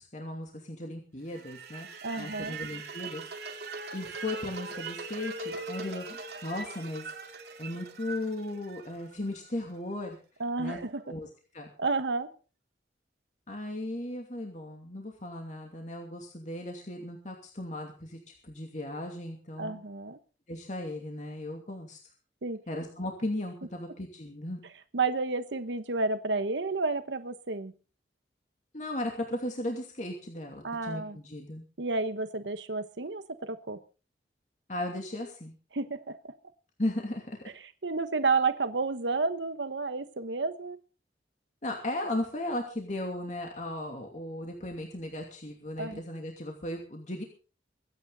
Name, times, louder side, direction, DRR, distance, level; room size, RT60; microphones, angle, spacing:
voice 1, 0.0-1.9 2.2-3.2 3.9-7.1 7.6-10.2 10.6-10.8 11.0-11.3 11.5-11.7 13.5-19.8 20.5-22.0 22.7-24.6 28.7-31.6 34.7-35.5 36.8-37.5 41.6-47.2, left 1 dB, 45° left, 2 dB, 2.6 m, -36 dB
sound 1, 1.3-9.4, right 3 dB, 65° right, 2.4 m, -41 dB
voice 2, 2.0-2.6 10.4-11.0 11.8-12.3 19.6-20.2 22.4-22.6 24.9-27.7 30.6-31.2 31.8-33.8 35.7-36.2 37.8-40.8 45.8-46.0, right 3 dB, 90° right, 10 dB, 1.1 m, -31 dB
24.0 x 9.6 x 4.0 m, 0.35 s
head